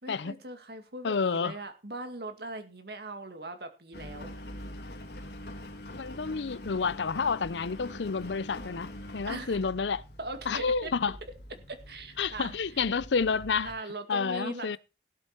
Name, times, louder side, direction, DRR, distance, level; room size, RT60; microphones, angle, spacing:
voice 1, 0.0-4.3 9.3-9.6 10.2-10.9 11.7-13.0 13.6-14.8, right 2 dB, 65° right, 2.2 m, -40 dB
voice 2, 1.0-1.5 6.0-10.0 10.5-11.2 12.2-13.7 14.1-14.8, left 5 dB, 85° left, 0.6 m, -29 dB
Engine, 3.9-13.7, left 1 dB, 65° left, 2.4 m, -44 dB
17.0 x 7.7 x 4.5 m
head